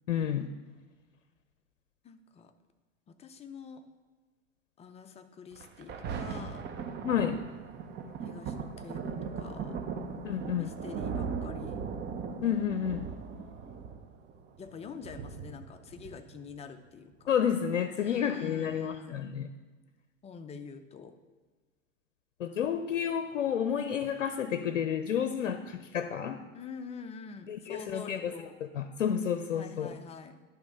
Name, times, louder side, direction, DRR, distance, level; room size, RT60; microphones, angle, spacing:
voice 1, 0.1-0.5 7.0-7.4 10.2-10.7 12.4-13.1 17.3-19.5 22.4-26.4 27.5-28.3 28.7-30.0, left 8 dB, 85° left, 9 dB, 0.6 m, -30 dB
voice 2, 2.0-2.5 3.1-3.8 4.8-6.7 8.2-9.8 10.6-11.8 14.6-17.3 17.9-19.3 20.2-21.2 26.5-28.6 29.5-30.3, left 5 dB, 20° left, 8 dB, 0.5 m, -46 dB
Thunder, 5.6-16.6 17.2-17.3, right 6 dB, 30° right, 0.8 m, -38 dB
10.5 x 3.6 x 5.5 m, 1.3 s
hypercardioid pair, 100°, 37 cm